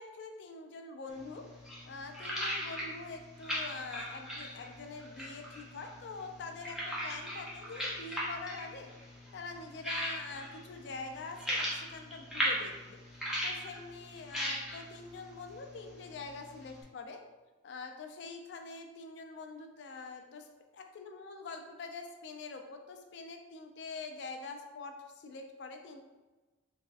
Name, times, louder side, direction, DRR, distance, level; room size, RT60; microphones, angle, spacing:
voice 1, 0.0-1.5 1.9-8.9 9.3-13.0 13.4-17.2 17.6-20.5 20.7-26.0, left 4 dB, 60° left, 5 dB, 0.3 m, -45 dB
sound 1, 1.1-16.8, equal, 5° right, 0.5 m, -39 dB
3.4 x 2.4 x 2.3 m, 1.2 s
head